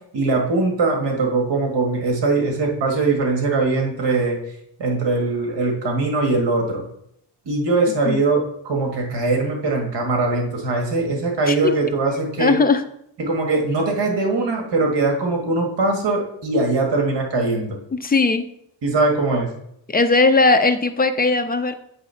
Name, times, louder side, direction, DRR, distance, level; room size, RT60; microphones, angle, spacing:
voice 1, 0.1-4.4 4.8-6.8 7.4-12.5 13.2-17.8 18.8-19.5, right 3 dB, 60° right, 1 dB, 1.7 m, -21 dB
voice 2, 11.5-11.8 12.4-12.8 17.9-18.5 19.9-21.7, left 3 dB, 20° left, 8 dB, 0.3 m, -18 dB
8.0 x 3.4 x 5.5 m, 0.73 s
cardioid pair, 135°, 47 cm